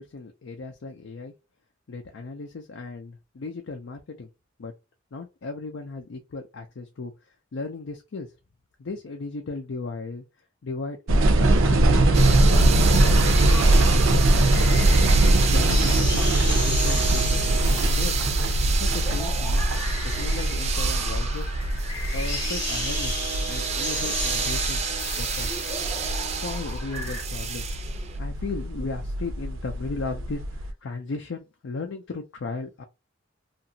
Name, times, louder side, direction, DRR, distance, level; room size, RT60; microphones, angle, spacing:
voice 1, 0.0-1.3 1.9-4.3 4.6-4.7 5.1-7.1 7.5-8.3 8.8-10.2 10.6-13.1 13.7-14.4 14.7-16.3 16.6-18.1 18.6-19.7 20.0-21.5 22.1-23.2 23.5-24.8 25.2-25.5 26.2-27.8 28.1-32.8, left 3 dB, 75° left, 0.5 m, -36 dB
sound 1, 11.1-30.7, right 1 dB, 85° right, 0.5 m, -22 dB
sound 2, 12.1-28.2, right 7 dB, 30° right, 0.4 m, -31 dB
sound 3, 12.6-27.2, left 3 dB, 20° left, 0.8 m, -36 dB
2.8 x 2.5 x 2.6 m
head